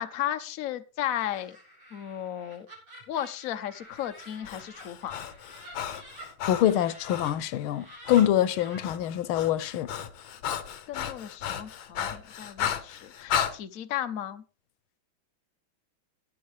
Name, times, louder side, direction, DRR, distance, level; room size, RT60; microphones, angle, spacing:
voice 1, 0.0-1.6 1.9-2.7 3.1-5.2 10.9-14.4, left 11 dB, 55° left, 1.0 m, -34 dB
Laughter, 1.1-7.3 7.7-8.9, right 1 dB, 85° right, 6.2 m, -49 dB
Breathing, 4.2-7.4 8.1-8.3 8.6-13.5, left 9 dB, 75° left, 1.8 m, -34 dB
voice 2, 6.5-9.9, left 11 dB, 90° left, 1.6 m, -25 dB
16.0 x 9.8 x 3.3 m
omnidirectional pair, 2.2 m